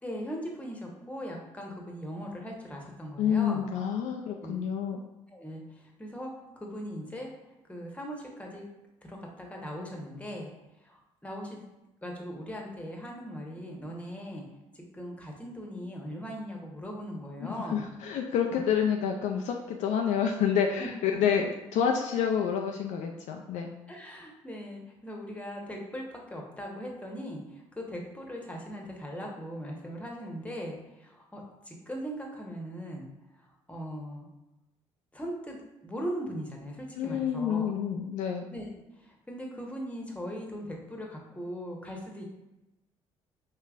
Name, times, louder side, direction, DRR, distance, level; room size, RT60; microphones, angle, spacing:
voice 1, 0.0-3.6 4.2-4.6 5.3-7.3 7.7-8.7 9.0-10.5 10.8-11.6 12.0-14.5 14.7-17.8 18.5-18.6 20.8-21.4 23.9-34.3 35.1-35.6 35.8-37.7 38.5-38.7 39.0-42.2, equal, 10° left, 0 dB, 1.1 m, -39 dB
voice 2, 3.2-5.0 17.4-23.7 37.0-38.5, left 8 dB, 55° left, 2 dB, 0.4 m, -28 dB
5.4 x 3.1 x 2.5 m, 0.97 s
figure-of-eight pair, 50°, 15 cm